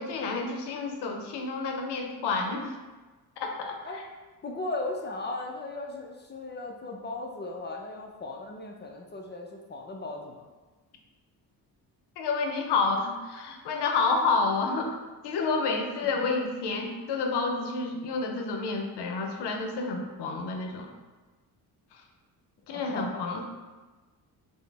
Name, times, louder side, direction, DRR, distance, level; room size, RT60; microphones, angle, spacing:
voice 1, 0.0-2.7 3.4-4.0 12.2-15.0 15.2-20.9 22.7-23.4, left 4 dB, 70° left, 3 dB, 0.6 m, -29 dB
voice 2, 4.4-10.5 22.7-23.2, left 2 dB, 25° left, 1 dB, 0.4 m, -37 dB
3.8 x 2.1 x 3.3 m, 1.3 s
supercardioid pair, 65°, 43 cm